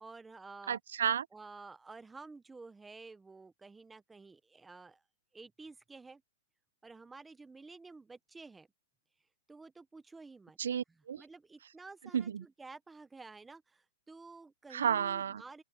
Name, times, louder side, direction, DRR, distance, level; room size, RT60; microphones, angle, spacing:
voice 1, 0.0-0.8 1.3-5.0 5.3-6.2 6.8-8.7 9.5-10.6 11.2-15.6, right 3 dB, 5° right, 0.7 m, -51 dB
voice 2, 0.7-1.3 10.6-11.2 12.1-12.4 14.7-15.4, right 8 dB, 75° right, 0.4 m, -32 dB
open air
hypercardioid pair, 180°, 0 cm